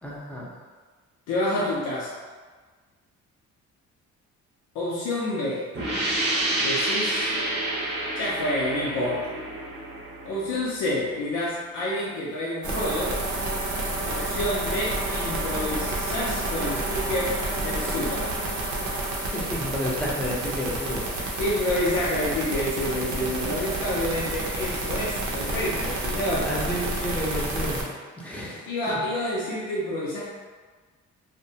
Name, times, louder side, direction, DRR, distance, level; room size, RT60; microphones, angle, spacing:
voice 1, 0.0-0.5 19.1-21.2 25.3-26.1 26.4-28.7, left 1 dB, 5° left, -5 dB, 0.6 m, -32 dB
voice 2, 1.3-2.1 4.7-5.7 6.5-7.3 8.1-9.4 10.3-13.2 14.0-18.3 21.4-26.5 28.7-30.3, left 1 dB, 85° left, -6 dB, 0.5 m, -28 dB
sound 1, 5.7-11.2, right 1 dB, 35° right, 0.7 m, -29 dB
sound 2, 12.6-27.8, right 2 dB, 75° right, 0.6 m, -29 dB
2.6 x 2.1 x 2.6 m, 1.4 s
cardioid pair, 90°, 30 cm